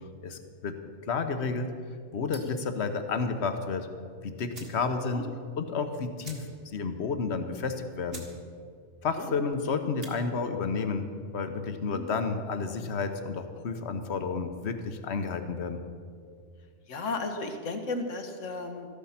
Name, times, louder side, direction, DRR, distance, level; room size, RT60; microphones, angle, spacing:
voice 1, 0.2-0.8 1.1-1.7 2.1-3.9 4.2-5.2 5.6-8.3 9.0-11.1 11.3-15.8, left 4 dB, 60° left, 8 dB, 1.2 m, -31 dB
sound 1, 2.3-2.7 4.0-4.1 4.5-4.8 5.2-5.3 5.5-5.7 6.2-6.8 7.1-7.2 7.7-7.8 8.1-8.4 8.7-9.1 9.8-10.2, right 2 dB, 50° right, 2.1 m, -47 dB
voice 2, 16.9-18.9, left 3 dB, 75° left, 6 dB, 1.6 m, -34 dB
13.5 x 12.0 x 5.8 m, 2.1 s
omnidirectional pair, 1.3 m